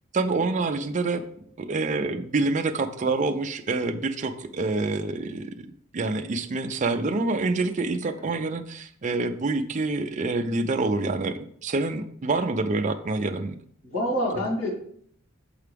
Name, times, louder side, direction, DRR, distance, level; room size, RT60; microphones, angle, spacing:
voice 1, 0.1-1.2 1.6-5.7 5.9-13.5, right 3 dB, 35° right, 6 dB, 0.4 m, -27 dB
voice 2, 13.8-14.7, equal, 70° left, -5 dB, 2.4 m, -28 dB
6.6 x 4.7 x 3.4 m, 0.63 s
head